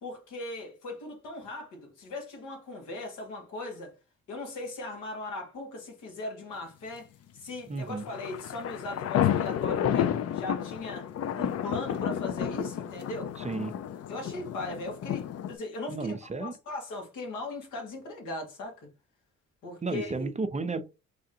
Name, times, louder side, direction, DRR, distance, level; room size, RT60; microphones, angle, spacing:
voice 1, 0.0-3.9 4.3-11.1 11.4-13.3 14.1-18.9 19.6-20.3, left 2 dB, 80° left, 1.8 m, -39 dB
voice 2, 7.7-8.0 13.4-13.7 15.9-16.6 19.8-20.8, right 3 dB, 25° right, 0.5 m, -32 dB
sound 1, 7.9-15.5, left 9 dB, 55° left, 0.5 m, -31 dB
3.8 x 3.4 x 2.8 m
cardioid pair, 90°, 30 cm